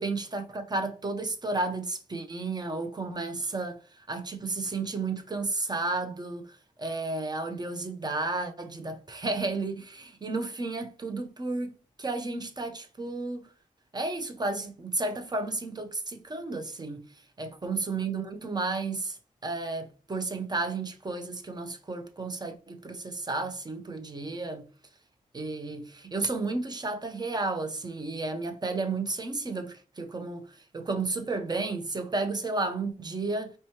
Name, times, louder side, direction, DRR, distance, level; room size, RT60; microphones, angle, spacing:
voice 1, 0.0-13.5 13.9-17.0 17.4-24.7 25.3-33.5, right 3 dB, 30° right, 0.7 m, -32 dB
4.5 x 3.0 x 2.9 m
cardioid pair, 75°, 14 cm